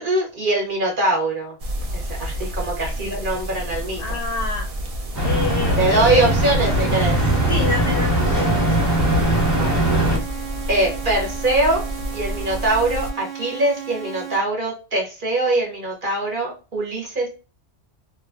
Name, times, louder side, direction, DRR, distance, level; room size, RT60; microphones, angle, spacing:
voice 1, 0.0-1.5 1.9-4.2 5.8-7.2 9.5-9.9 10.7-11.8 12.1-17.3, right 2 dB, 50° right, -2 dB, 0.9 m, -22 dB
sound 1, 1.6-13.1, equal, 70° right, 0.3 m, -30 dB
voice 2, 4.0-4.7 5.2-6.3 7.5-8.8, left 3 dB, 60° left, 2 dB, 0.6 m, -28 dB
sound 2, 5.1-10.2, right 1 dB, 15° right, 0.8 m, -20 dB
sound 3, 5.4-14.4, right 9 dB, 85° right, 1.1 m, -35 dB
3.0 x 2.2 x 2.4 m, 0.33 s
omnidirectional pair, 1.3 m